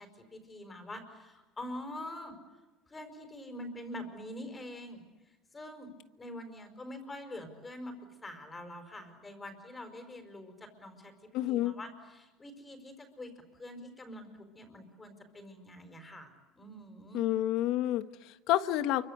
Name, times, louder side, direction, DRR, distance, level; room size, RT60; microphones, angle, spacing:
voice 1, 0.0-2.4 2.9-5.0 5.5-5.9 6.2-7.9 8.2-11.1 11.5-17.2, left 1 dB, 15° left, 7 dB, 5.2 m, -45 dB
voice 2, 11.3-11.7 17.1-19.1, left 13 dB, 60° left, 12 dB, 1.4 m, -29 dB
28.0 x 24.5 x 8.2 m, 1.1 s
cardioid pair, 135°, 0 cm